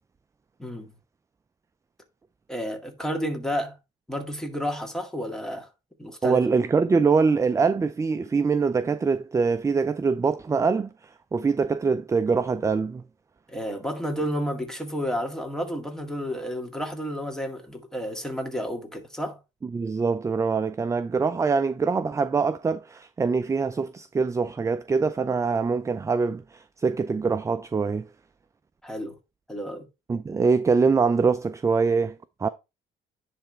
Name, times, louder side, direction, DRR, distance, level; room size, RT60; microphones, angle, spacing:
voice 1, 0.6-0.9 2.5-3.8 4.1-5.7 6.0-6.4 13.5-19.4 28.8-29.2 29.5-29.9, equal, 5° left, 2.1 m, -31 dB
voice 2, 6.2-13.0 19.7-28.1 30.1-32.5, right 4 dB, 20° right, 0.4 m, -24 dB
10.5 x 3.5 x 4.4 m
cardioid pair, 110°, 17 cm